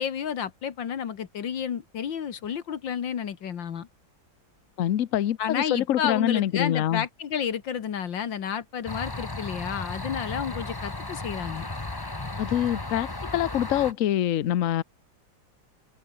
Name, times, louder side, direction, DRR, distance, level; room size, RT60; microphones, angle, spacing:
voice 1, 0.0-3.9 5.4-11.7, left 8 dB, 70° left, 2.1 m, -31 dB
voice 2, 4.8-7.0 12.4-14.8, left 11 dB, 55° left, 1.0 m, -25 dB
sound 1, 8.9-13.9, left 2 dB, 15° left, 1.2 m, -35 dB
open air
omnidirectional pair, 2.1 m